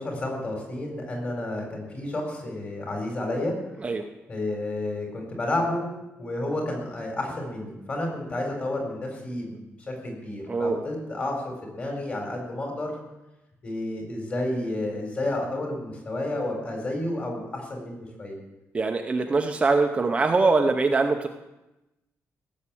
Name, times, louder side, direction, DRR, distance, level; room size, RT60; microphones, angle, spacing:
voice 1, 0.0-3.5 4.3-5.9 6.2-12.9 13.6-18.4, left 1 dB, 30° left, 1 dB, 4.4 m, -31 dB
voice 2, 10.5-10.8 18.7-21.3, right 3 dB, 25° right, 4 dB, 0.7 m, -23 dB
17.0 x 7.4 x 8.6 m, 0.99 s
wide cardioid pair, 180°, 5 cm